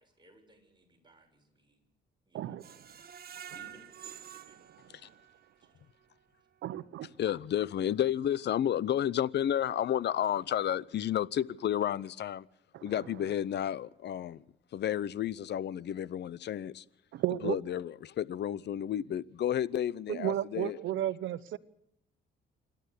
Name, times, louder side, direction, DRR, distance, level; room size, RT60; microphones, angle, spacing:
voice 1, 0.0-1.8 2.3-2.9 3.5-4.7 5.0-5.2 5.6-5.7, right 2 dB, 20° right, 6.9 m, -61 dB
voice 2, 2.3-2.7 6.6-7.1 12.7-12.9 17.1-17.6 20.1-21.6, right 12 dB, 75° right, 1.0 m, -33 dB
Screech, 2.6-5.6 6.0-6.1 6.5-6.6, right 9 dB, 50° right, 1.4 m, -48 dB
voice 3, 7.2-12.5 12.8-14.4 14.7-16.8 17.4-20.8, left 10 dB, 60° left, 0.8 m, -31 dB
27.0 x 12.0 x 8.3 m
cardioid pair, 90°, 20 cm